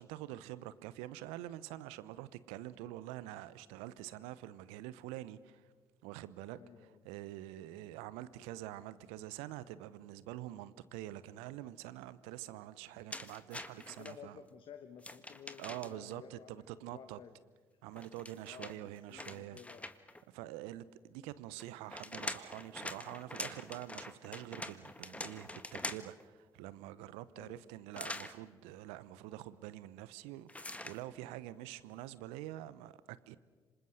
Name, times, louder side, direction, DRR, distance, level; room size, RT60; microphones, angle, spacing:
voice 1, 0.0-5.6 6.0-6.6 7.0-14.4 15.6-17.2 17.8-19.6 20.3-33.4, right 14 dB, 70° right, 0.9 m, -46 dB
voice 2, 6.5-7.0 13.8-17.4 18.4-19.9 27.3-27.7, left 8 dB, 55° left, 1.4 m, -54 dB
sound 1, 13.1-14.1 15.0-16.1 17.9-20.2 21.6-26.2 27.9-28.3 30.5-31.0, left 2 dB, 10° left, 1.7 m, -44 dB
27.0 x 26.0 x 6.5 m
figure-of-eight pair, 45°, 10 cm